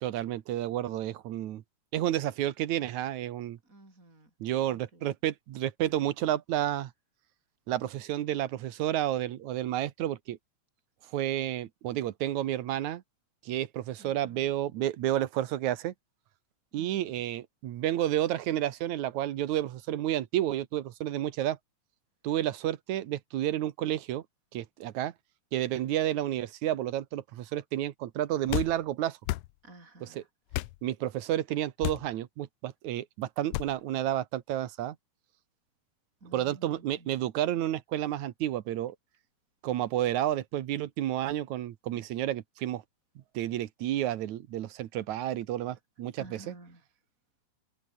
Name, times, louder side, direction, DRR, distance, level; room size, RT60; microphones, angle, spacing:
voice 1, 0.0-1.6 1.9-3.6 4.4-6.9 7.7-10.4 11.1-13.0 13.4-15.9 16.7-21.6 22.2-24.2 24.5-25.1 25.5-29.2 30.8-35.0 36.3-39.0 39.6-42.8 43.3-46.2, right 12 dB, 80° right, 2.5 m, -31 dB
voice 2, 3.6-4.3 4.6-5.1 14.0-14.6 16.8-17.3 29.6-30.3 36.2-37.1 46.2-46.8, right 2 dB, 25° right, 7.5 m, -52 dB
sound 1, 28.5-28.7 29.2-29.5 30.5-30.8 31.8-32.1 33.5-33.7, left 18 dB, 75° left, 1.5 m, -31 dB
omnidirectional pair, 3.3 m